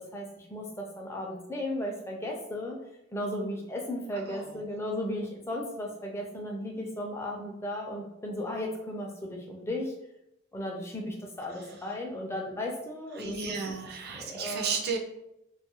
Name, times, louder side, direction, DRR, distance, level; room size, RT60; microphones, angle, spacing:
voice 1, 0.0-2.8 3.1-9.9 10.5-13.6 14.2-14.8, left 1 dB, 15° left, 0 dB, 0.4 m, -35 dB
voice 2, 4.3-4.6 11.6-11.7 13.1-15.0, right 5 dB, 50° right, 3 dB, 0.4 m, -34 dB
2.5 x 2.3 x 3.0 m, 0.84 s
head